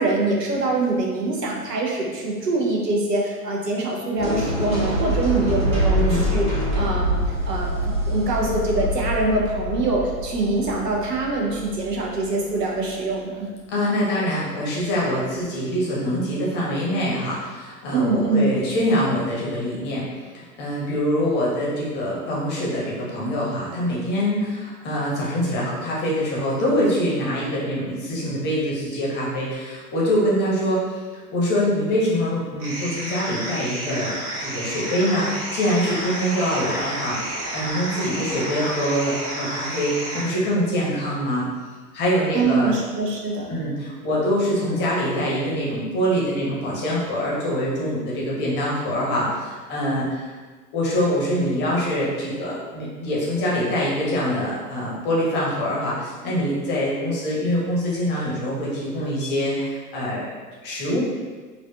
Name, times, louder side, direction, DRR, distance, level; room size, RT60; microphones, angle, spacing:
voice 1, 0.0-7.2 7.4-13.5 17.9-18.5 42.3-43.6, right 2 dB, 85° right, -1 dB, 0.7 m, -24 dB
sound 1, 4.2-12.2, equal, 15° right, 0.8 m, -25 dB
voice 2, 5.9-6.2 13.7-41.4 41.9-42.8 43.5-50.3 50.7-60.3 60.6-61.0, equal, 25° left, -5 dB, 0.7 m, -24 dB
sound 2, 32.6-40.2, right 1 dB, 35° right, 1.0 m, -30 dB
3.3 x 2.3 x 2.2 m, 1.4 s
figure-of-eight pair, 100°, 47 cm